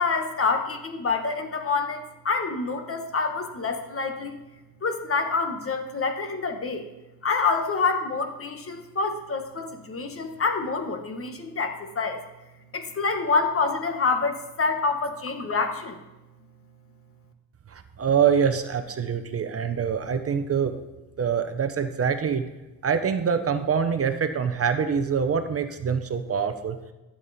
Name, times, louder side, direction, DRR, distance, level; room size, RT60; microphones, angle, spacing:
voice 1, 0.0-4.4 4.8-6.8 7.2-12.2 12.7-16.0, left 4 dB, 35° left, 6 dB, 1.2 m, -27 dB
voice 2, 17.7-20.7 21.2-22.4 22.8-26.8, right 7 dB, 40° right, 8 dB, 0.7 m, -25 dB
12.5 x 7.4 x 4.1 m, 1.1 s
cardioid pair, 105°, 37 cm